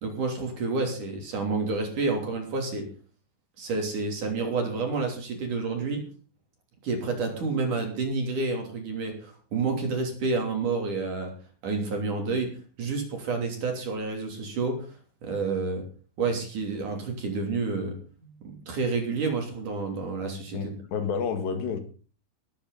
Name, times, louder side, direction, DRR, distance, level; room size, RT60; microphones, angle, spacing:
voice 1, 0.0-2.8 3.6-6.0 6.8-11.3 11.6-12.5 12.8-14.9 15.2-15.8 16.2-18.0 18.2-20.7, right 4 dB, 45° right, 4.3 m, -29 dB
voice 2, 20.5-21.8, left 6 dB, 70° left, 3.9 m, -30 dB
19.0 x 13.5 x 4.1 m
omnidirectional pair, 5.4 m